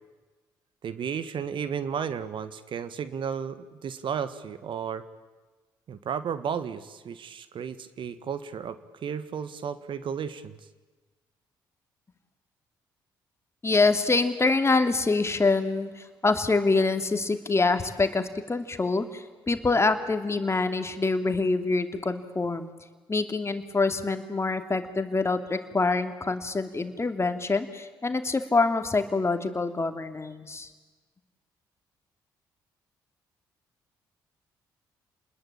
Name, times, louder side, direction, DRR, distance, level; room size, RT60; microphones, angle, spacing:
voice 1, 0.8-5.0 5.9-10.6, right 7 dB, 55° right, 13 dB, 1.6 m, -33 dB
voice 2, 13.6-22.7 23.1-30.7, left 3 dB, 25° left, 8 dB, 2.9 m, -25 dB
29.0 x 21.0 x 8.7 m, 1.3 s
hypercardioid pair, 50°, 10 cm